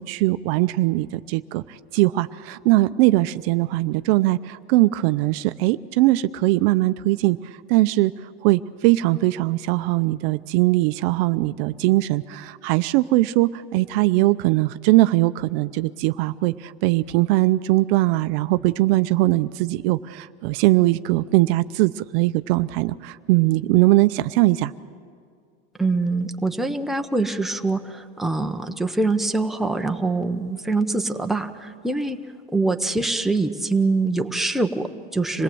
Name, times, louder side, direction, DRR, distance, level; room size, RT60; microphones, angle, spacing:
voice 1, 0.0-7.4 7.7-8.1 8.4-24.7, right 18 dB, 65° right, 13 dB, 0.7 m, -20 dB
voice 2, 25.8-32.2 32.5-35.4, right 3 dB, ahead, 4 dB, 0.9 m, -24 dB
26.5 x 18.0 x 7.8 m, 2.1 s
supercardioid pair, 135°, 32 cm